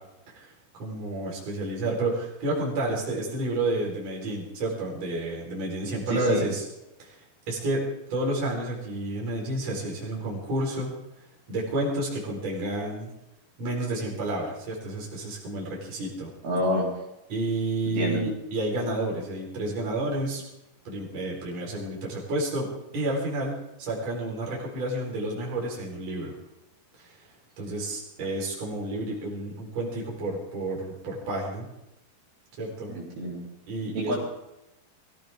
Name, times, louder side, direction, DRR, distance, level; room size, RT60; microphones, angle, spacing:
voice 1, 0.3-6.7 7.0-7.2 7.5-7.8 8.1-11.0 11.5-13.1 13.6-16.3 17.3-20.4 20.9-22.7 22.9-26.3 27.0-27.3 27.6-31.7 32.6-32.9 33.7-34.2, right 1 dB, 40° right, -3 dB, 5.3 m, -30 dB
voice 2, 6.1-6.4 16.4-16.9 18.0-18.2 32.9-33.4 34.0-34.2, equal, 70° right, -5 dB, 5.7 m, -27 dB
22.5 x 15.5 x 3.6 m, 0.90 s
omnidirectional pair, 4.5 m